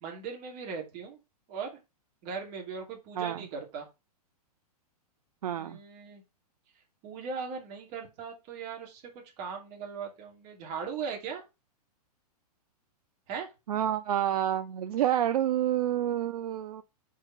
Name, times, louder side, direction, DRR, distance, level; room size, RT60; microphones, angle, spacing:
voice 1, 0.0-1.2 1.5-1.8 2.2-3.9 5.6-6.2 7.0-11.4 13.3-13.5, right 6 dB, 40° right, 2.5 m, -39 dB
voice 2, 5.4-5.8 13.7-16.8, right 11 dB, 70° right, 0.6 m, -28 dB
4.9 x 4.7 x 5.6 m
hypercardioid pair, 135°, 20 cm